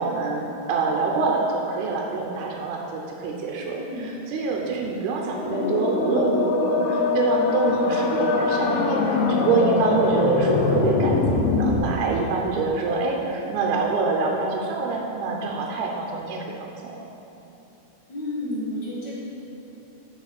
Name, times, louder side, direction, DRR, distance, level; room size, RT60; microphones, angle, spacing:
voice 1, 0.0-16.5 16.8-16.9, right 4 dB, 75° right, 0 dB, 2.0 m, -26 dB
voice 2, 3.7-4.1 18.1-19.4, left 1 dB, 45° left, -8 dB, 1.6 m, -31 dB
sound 1, 5.3-11.8, left 3 dB, 75° left, 1.9 m, -22 dB
7.2 x 5.0 x 5.9 m, 3.0 s
omnidirectional pair, 3.9 m